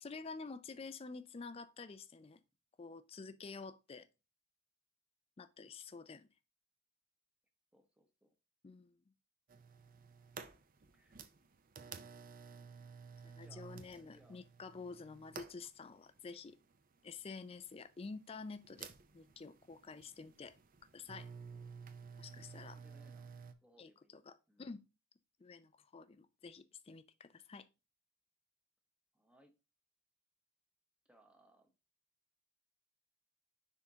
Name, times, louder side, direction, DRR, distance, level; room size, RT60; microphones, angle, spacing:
voice 1, 0.0-2.4 2.8-4.1 5.4-6.3 8.6-9.0 13.2-16.6 17.0-20.5 20.9-21.3 22.2-22.8 23.8-23.9 24.3-24.8 25.4-27.7, left 4 dB, 25° left, 0.3 m, -49 dB
voice 2, 7.7-8.3 10.9-11.2 13.4-14.4 22.6-23.3 23.6-24.7 29.1-29.5 31.0-31.7, right 1 dB, 5° right, 0.8 m, -68 dB
sound 1, 9.5-23.5, right 5 dB, 40° right, 0.5 m, -53 dB
9.8 x 3.6 x 2.8 m
head